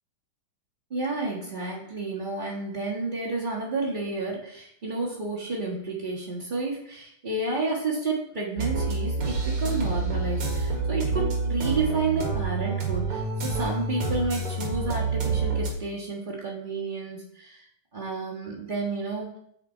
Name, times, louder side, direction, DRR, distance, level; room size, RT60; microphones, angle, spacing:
voice 1, 0.9-17.6 17.9-19.3, right 3 dB, 85° right, -5 dB, 0.4 m, -31 dB
sound 1, 8.6-15.7, right 3 dB, 50° right, 2.1 m, -27 dB
7.0 x 7.0 x 4.5 m, 0.72 s
omnidirectional pair, 3.7 m